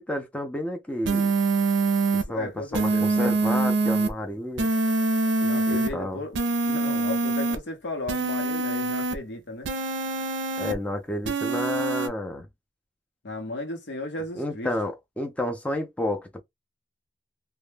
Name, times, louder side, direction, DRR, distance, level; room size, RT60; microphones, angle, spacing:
voice 1, 0.0-1.3 2.3-4.7 5.7-6.2 10.6-12.5 14.4-16.4, left 1 dB, 5° left, 0.4 m, -30 dB
sound 1, 1.0-2.2 2.7-4.1 4.6-5.9 6.3-7.6 8.1-9.2 9.6-10.7 11.2-12.1, right 3 dB, 75° right, 0.5 m, -24 dB
voice 2, 2.3-3.3 5.4-9.7 13.2-14.7, left 2 dB, 70° left, 0.8 m, -35 dB
2.1 x 2.1 x 3.2 m
head